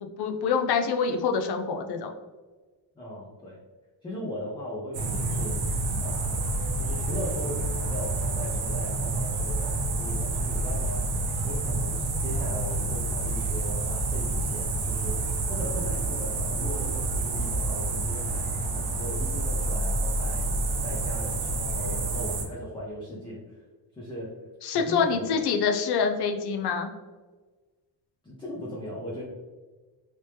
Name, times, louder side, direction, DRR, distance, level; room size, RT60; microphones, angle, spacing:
voice 1, 0.0-2.1 24.6-26.9, left 5 dB, 60° left, 5 dB, 0.5 m, -26 dB
voice 2, 3.0-3.6 4.0-5.6 6.0-6.4 6.8-11.2 11.4-23.6 24.0-24.4 24.7-25.4 28.2-29.2, equal, 10° left, -6 dB, 0.5 m, -38 dB
sound 1, 4.9-22.5, right 2 dB, 60° right, 0.8 m, -28 dB
3.0 x 2.9 x 3.2 m, 1.3 s
cardioid pair, 170°, 46 cm